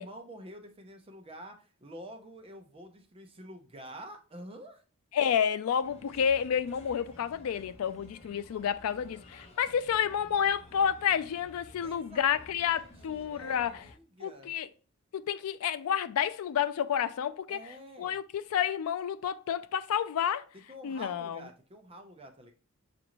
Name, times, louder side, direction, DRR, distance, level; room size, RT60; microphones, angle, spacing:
voice 1, 0.0-4.8 11.8-12.4 13.1-14.5 17.5-18.2 20.5-22.5, equal, 25° right, 0.6 m, -48 dB
voice 2, 5.1-13.8 14.2-14.7 15.1-20.5 20.8-21.4, left 8 dB, 85° left, 0.3 m, -30 dB
Bird, 5.8-13.9, left 1 dB, 30° left, 0.8 m, -53 dB
6.0 x 2.5 x 2.9 m
head